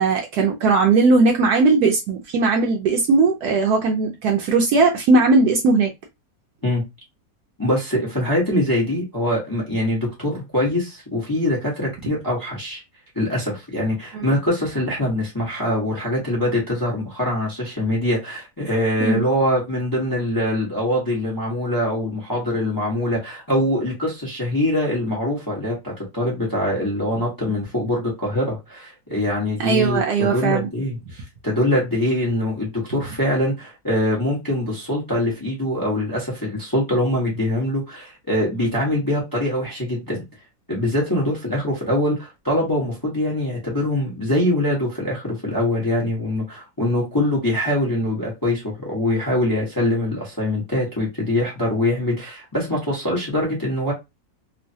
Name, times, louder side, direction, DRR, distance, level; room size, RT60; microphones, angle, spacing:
voice 1, 0.0-5.9 14.1-14.3 19.0-19.2 29.6-30.7, right 3 dB, 70° right, 1.0 m, -18 dB
voice 2, 7.6-12.8 13.1-40.2 40.7-53.9, left 1 dB, 15° left, 0.7 m, -23 dB
3.1 x 2.0 x 2.7 m
omnidirectional pair, 1.9 m